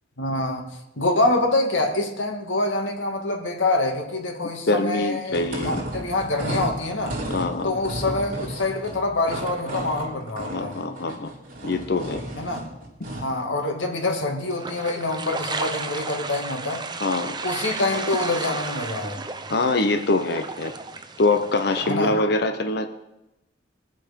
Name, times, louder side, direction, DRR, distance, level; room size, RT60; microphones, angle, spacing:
voice 1, 0.2-0.7 1.0-7.2 7.6-10.8 12.4-12.7 13.1-16.8 17.4-19.2 21.9-22.1, left 2 dB, 85° left, 2.2 m, -25 dB
voice 2, 4.7-5.8 7.3-7.8 10.5-11.3 11.6-12.2 17.0-17.3 19.5-20.7 21.2-22.9, left 2 dB, 60° left, 0.9 m, -24 dB
sound 1, 5.3-13.4, right 1 dB, 50° right, 3.8 m, -33 dB
sound 2, 14.5-21.9, right 4 dB, 25° right, 0.7 m, -33 dB
22.0 x 7.6 x 5.4 m
head